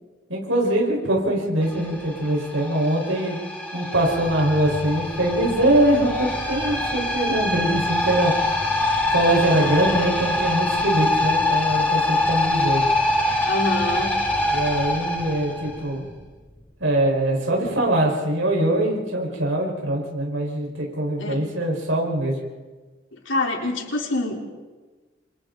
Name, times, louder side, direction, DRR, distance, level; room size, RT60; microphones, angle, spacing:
voice 1, 0.3-3.4 3.7-8.3 9.1-12.9 14.5-16.1 16.8-22.4, right 1 dB, 85° right, -1 dB, 5.0 m, -22 dB
sound 1, 1.6-16.2, left 2 dB, 10° left, 7.1 m, -24 dB
voice 2, 13.4-14.2 21.2-21.4 23.1-24.5, left 2 dB, 70° left, 0 dB, 3.9 m, -26 dB
28.0 x 27.0 x 4.0 m, 1.3 s
head